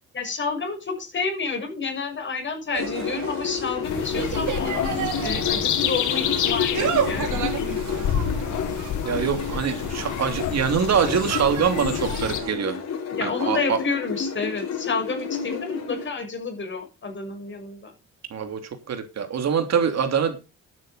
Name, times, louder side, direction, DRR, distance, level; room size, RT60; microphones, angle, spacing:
voice 1, 0.1-7.4 13.1-17.9, left 4 dB, 40° left, 3 dB, 6.5 m, -30 dB
Insect, 2.7-12.5, right 8 dB, 80° right, 3.4 m, -32 dB
sound 1, 2.8-16.1, left 7 dB, 60° left, 5.1 m, -31 dB
sound 2, 3.8-12.4, left 9 dB, 80° left, 2.2 m, -29 dB
voice 2, 9.0-12.8 13.2-13.8 18.3-20.4, right 7 dB, 60° right, 7 dB, 3.0 m, -24 dB
12.0 x 9.4 x 5.1 m, 0.31 s
cardioid pair, 90°, 30 cm